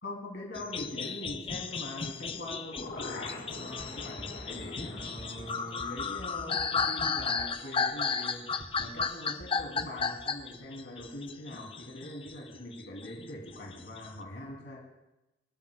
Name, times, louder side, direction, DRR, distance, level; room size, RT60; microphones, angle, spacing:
voice 1, 0.0-14.8, left 1 dB, 65° left, -3 dB, 2.6 m, -43 dB
sound 1, 0.5-12.4 12.7-14.1, left 5 dB, 30° left, 0.6 m, -34 dB
sound 2, 2.2-8.2 8.5-8.6, left 3 dB, 50° left, 1.3 m, -46 dB
sound 3, 2.9-8.3 8.6-9.0 9.4-10.8, right 1 dB, 25° right, 0.9 m, -48 dB
25.5 x 13.0 x 2.2 m, 0.95 s
head